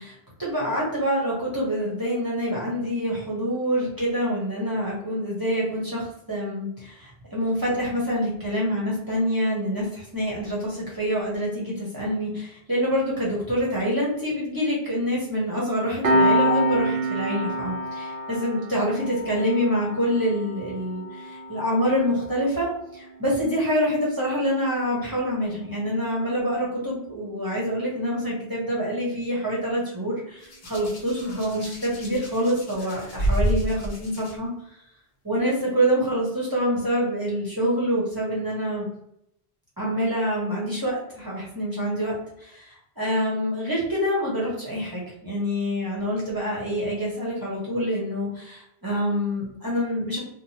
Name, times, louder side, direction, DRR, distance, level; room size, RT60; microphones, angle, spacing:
voice 1, 0.0-34.5 35.2-38.9 39.8-50.2, equal, 25° right, -6 dB, 0.8 m, -26 dB
Piano, 16.0-27.1, equal, 75° right, 0.8 m, -29 dB
Hands, 30.4-34.3 35.4-35.6, right 1 dB, 75° left, 1.0 m, -29 dB
3.1 x 2.0 x 2.7 m, 0.77 s
omnidirectional pair, 1.1 m